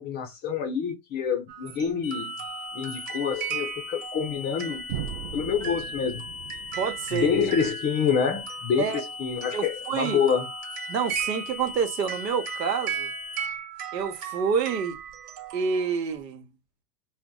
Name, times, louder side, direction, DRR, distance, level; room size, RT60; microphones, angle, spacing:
voice 1, 0.0-2.4 2.7-4.9 5.3-6.2 7.1-10.5, left 7 dB, 20° left, 0.5 m, -27 dB
sound 1, 1.5-16.2, right 8 dB, 50° right, 1.1 m, -37 dB
sound 2, 2.0-13.5, left 6 dB, 85° left, 0.6 m, -39 dB
sound 3, 4.9-8.8, right 10 dB, 30° right, 0.4 m, -39 dB
voice 2, 6.8-7.3 8.8-9.0 9.5-10.2 10.9-13.1 13.9-15.0 15.5-16.4, right 6 dB, 90° right, 1.1 m, -28 dB
2.7 x 2.1 x 3.7 m
hypercardioid pair, 125°, 48 cm